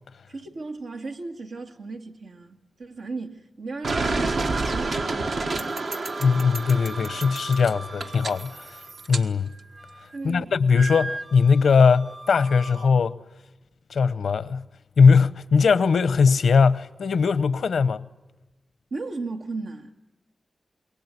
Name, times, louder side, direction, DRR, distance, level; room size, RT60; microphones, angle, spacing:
voice 1, 0.3-5.9 10.1-10.5 18.9-19.9, right 3 dB, 90° right, 2.0 m, -36 dB
sound 1, 3.8-9.2, right 3 dB, 70° right, 1.4 m, -29 dB
Wind instrument woodwind instrument, 6.1-9.1 9.5-10.2 10.7-12.9, right 2 dB, 35° right, 1.3 m, -39 dB
voice 2, 6.2-8.8 9.1-9.5 10.2-13.2 13.9-14.7 15.0-18.1, left 5 dB, 90° left, 0.8 m, -20 dB
27.0 x 22.5 x 8.3 m
wide cardioid pair, 80°, 0 cm